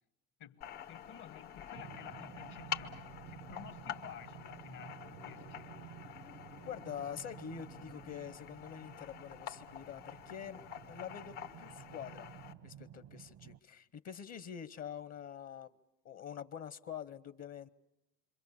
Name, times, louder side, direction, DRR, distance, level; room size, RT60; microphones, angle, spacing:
voice 1, 0.4-5.7, left 9 dB, 70° left, 1.4 m, -53 dB
sound 1, 0.6-12.5, left 10 dB, 85° left, 1.5 m, -47 dB
sound 2, 1.7-13.6, right 11 dB, 75° right, 1.0 m, -53 dB
voice 2, 6.7-10.6 10.9-12.3 12.6-15.7 16.0-17.7, left 8 dB, 55° left, 0.9 m, -45 dB
27.5 x 25.0 x 7.1 m
supercardioid pair, 75°, 31 cm